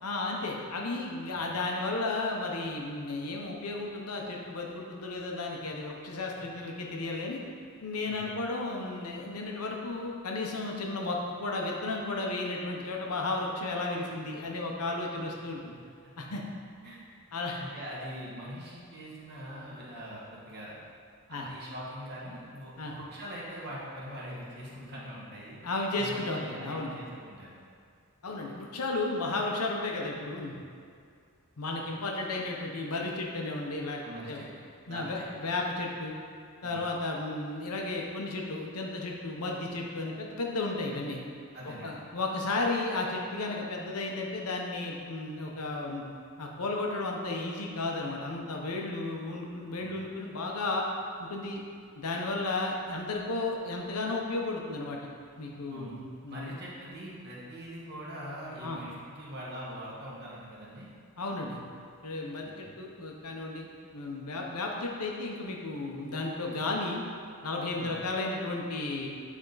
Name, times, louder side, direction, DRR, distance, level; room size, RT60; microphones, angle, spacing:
voice 1, 0.0-7.4 7.8-15.7 16.2-16.4 17.3-17.6 21.3-21.5 22.8-23.0 25.6-27.0 28.2-30.6 31.6-34.0 34.3-34.4 34.9-36.1 36.6-41.2 41.8-46.0 46.4-50.8 51.2-51.6 52.0-55.0 55.4-56.6 58.6-58.8 61.2-61.6 62.0-67.0 67.4-69.1, left 2 dB, 85° left, 0 dB, 0.9 m, -33 dB
voice 2, 17.6-20.8 21.3-25.6 26.0-27.5 34.0-35.5 36.6-36.8 41.5-42.0 49.8-50.0 55.7-55.9 56.3-60.9 62.4-62.8 67.8-68.0, equal, 50° right, -6 dB, 1.5 m, -43 dB
8.9 x 3.6 x 4.0 m, 2.3 s
head